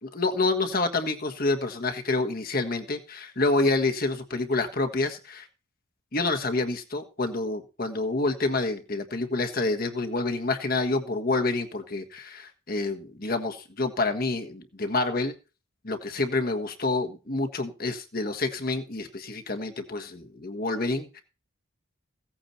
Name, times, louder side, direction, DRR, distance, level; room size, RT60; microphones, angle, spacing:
voice 1, 0.0-5.5 6.1-15.3 15.8-21.2, left 3 dB, 45° left, 6 dB, 1.5 m, -28 dB
16.0 x 8.9 x 4.3 m, 0.32 s
head